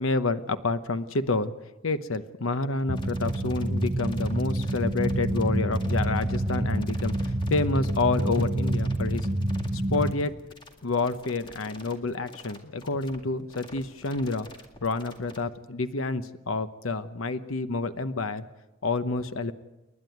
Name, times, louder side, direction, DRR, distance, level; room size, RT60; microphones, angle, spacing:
voice 1, 0.0-1.5 1.8-9.3 9.7-10.3 10.8-14.5 14.8-18.4 18.8-19.5, left 3 dB, 90° left, 11 dB, 1.0 m, -28 dB
sound 1, 2.9-15.4, left 2 dB, 25° left, 2.1 m, -48 dB
sound 2, 2.9-10.1, right 1 dB, 30° right, 1.0 m, -27 dB
29.5 x 11.0 x 9.3 m, 1.0 s
head